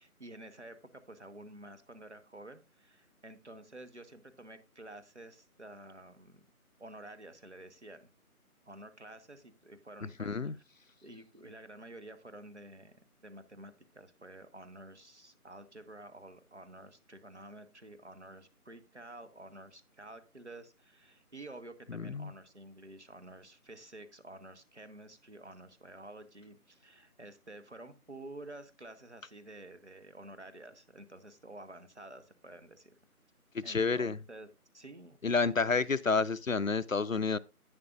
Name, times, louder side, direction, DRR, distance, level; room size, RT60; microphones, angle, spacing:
voice 1, 0.0-6.4 6.8-8.1 8.6-10.6 11.0-32.9 33.6-34.5 34.7-35.9, right 1 dB, 50° right, 1.2 m, -50 dB
voice 2, 10.2-10.5 21.9-22.3 33.5-34.2 35.2-37.4, left 4 dB, 65° left, 0.5 m, -30 dB
11.0 x 9.5 x 2.5 m
figure-of-eight pair, 180°, 45 cm